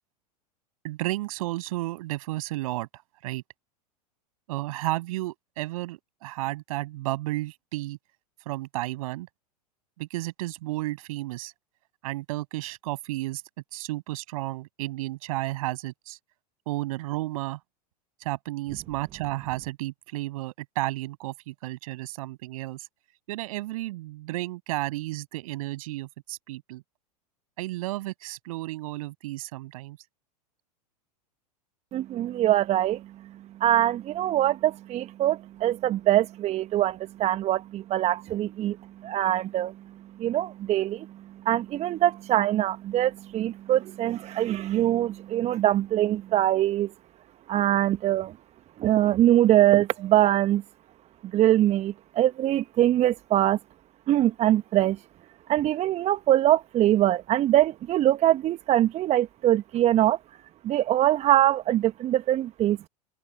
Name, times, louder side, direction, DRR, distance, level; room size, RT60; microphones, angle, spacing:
voice 1, 0.8-3.4 4.5-8.0 8.5-9.3 10.0-11.5 12.0-13.4 13.7-16.2 16.7-17.6 18.2-22.9 23.3-26.8 27.6-30.0, right 18 dB, 60° right, 7.1 m, -32 dB
voice 2, 31.9-33.0 33.6-38.8 39.0-39.7 40.2-41.1 41.4-46.9 47.5-48.3 48.8-50.6 51.3-53.6 54.1-55.0 55.5-60.2 60.6-62.9, right 13 dB, 35° right, 1.2 m, -23 dB
figure-of-eight pair, 95°, 20 cm